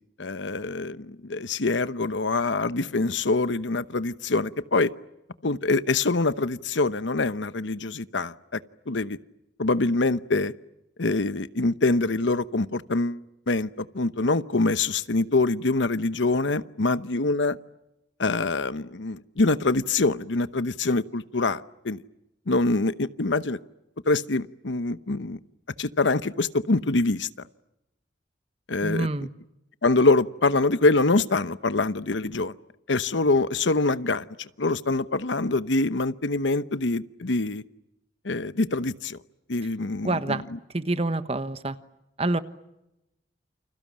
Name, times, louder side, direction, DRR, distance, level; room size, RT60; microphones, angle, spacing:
voice 1, 0.2-4.9 5.4-8.3 8.9-9.2 9.6-10.5 11.0-17.6 18.2-22.0 22.5-23.6 24.1-25.4 25.8-27.3 28.7-29.1 29.8-32.5 32.9-37.6 38.2-39.2 39.5-40.4, left 3 dB, 80° left, 14 dB, 1.0 m, -25 dB
voice 2, 28.8-29.3 40.0-40.4 40.7-41.8 42.2-42.4, right 2 dB, 35° right, 12 dB, 1.2 m, -26 dB
29.0 x 27.0 x 7.6 m, 0.92 s
head